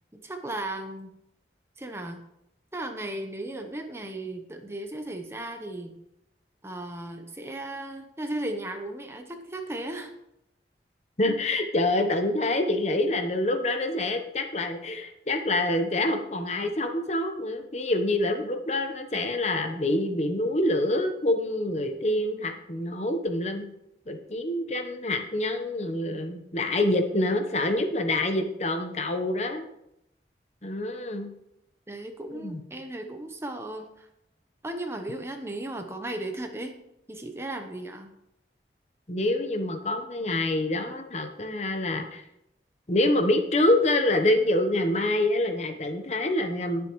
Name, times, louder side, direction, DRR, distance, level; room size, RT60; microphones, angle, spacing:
voice 1, 0.2-1.1 1.8-2.2 2.7-6.0 6.6-10.1 31.9-34.1 34.6-36.8 37.1-38.1, right 1 dB, 15° right, 5 dB, 0.8 m, -36 dB
voice 2, 11.2-23.7 24.1-29.7 30.6-31.3 32.3-32.6 39.1-42.2 42.9-46.9, left 1 dB, 40° left, 5 dB, 1.0 m, -26 dB
18.5 x 7.1 x 3.1 m, 0.82 s
head